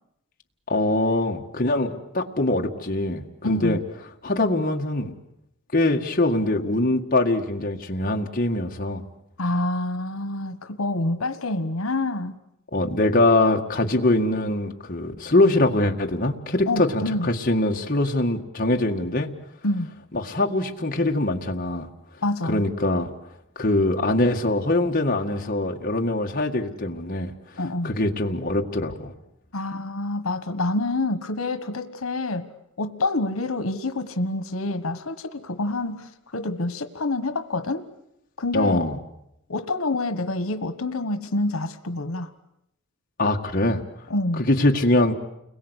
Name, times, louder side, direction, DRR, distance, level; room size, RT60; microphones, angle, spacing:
voice 1, 0.7-3.8 4.2-5.1 5.7-9.0 12.7-19.3 20.1-21.9 22.4-23.1 23.6-27.3 27.8-29.1 38.5-39.0 43.2-43.8 44.4-45.1, left 2 dB, 40° left, 1 dB, 1.8 m, -23 dB
voice 2, 3.4-3.8 9.4-12.4 16.7-17.3 19.6-19.9 22.2-22.6 27.6-27.9 29.5-32.5 32.8-37.8 38.4-38.9 39.5-42.3 44.1-44.5, left 2 dB, 90° left, 10 dB, 1.4 m, -27 dB
30.0 x 22.0 x 8.2 m, 0.84 s
head